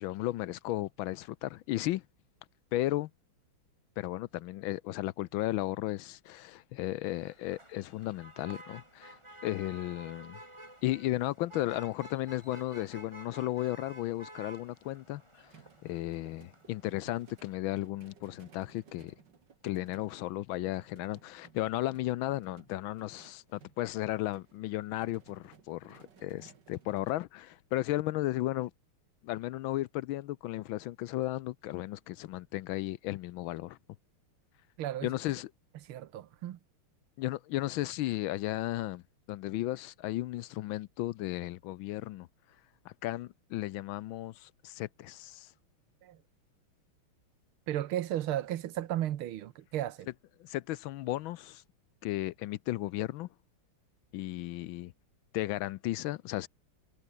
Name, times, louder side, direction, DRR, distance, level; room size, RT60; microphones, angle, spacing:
voice 1, 0.0-2.0 2.7-3.1 4.0-9.2 9.4-10.4 10.8-15.5 15.8-19.1 19.6-28.7 29.2-33.8 35.0-35.5 37.2-39.0 39.3-42.3 42.8-45.5 50.4-51.6 52.0-53.3 54.1-54.9 55.3-56.5, left 16 dB, 75° left, 1.3 m, -34 dB
Motor vehicle (road), 7.0-17.5, right 1 dB, 15° right, 4.5 m, -52 dB
sound 1, 15.5-27.2, right 6 dB, 55° right, 2.6 m, -60 dB
voice 2, 34.8-35.1 35.8-36.6 46.0-46.2 47.7-50.1, right 12 dB, 75° right, 1.8 m, -34 dB
omnidirectional pair, 2.4 m